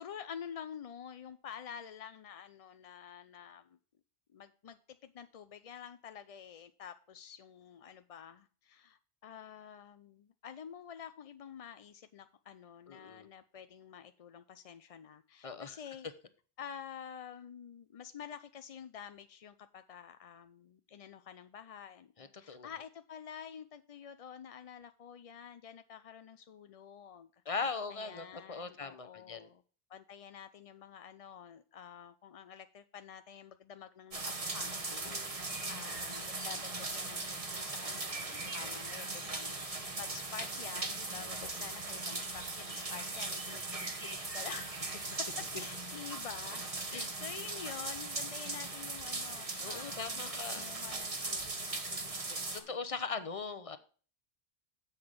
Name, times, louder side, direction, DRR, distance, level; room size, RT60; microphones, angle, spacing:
voice 1, 0.0-3.8 4.3-16.1 16.6-27.3 27.9-29.6 29.9-52.7, left 8 dB, 55° left, 11 dB, 0.4 m, -49 dB
voice 2, 12.9-13.3 15.4-15.8 22.2-22.7 27.5-29.5 34.9-35.3 38.4-38.8 41.2-41.3 46.9-47.1 49.6-50.7 52.5-53.8, left 4 dB, 35° left, 11 dB, 0.8 m, -40 dB
sound 1, 34.1-52.6, right 3 dB, 35° right, 1.2 m, -39 dB
7.8 x 5.7 x 6.5 m, 0.41 s
omnidirectional pair, 1.0 m